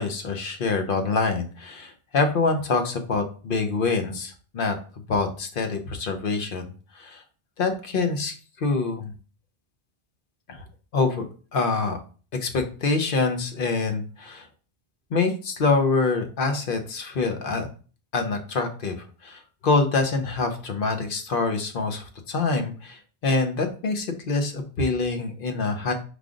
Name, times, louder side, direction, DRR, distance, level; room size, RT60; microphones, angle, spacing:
voice 1, 0.0-4.8 5.1-6.6 6.9-7.2 7.6-9.1 10.5-10.6 10.9-11.2 11.5-12.0 12.3-14.5 15.1-17.7 18.1-25.9, left 4 dB, 60° left, 6 dB, 0.9 m, -25 dB
5.0 x 2.4 x 3.7 m, 0.38 s
omnidirectional pair, 1.1 m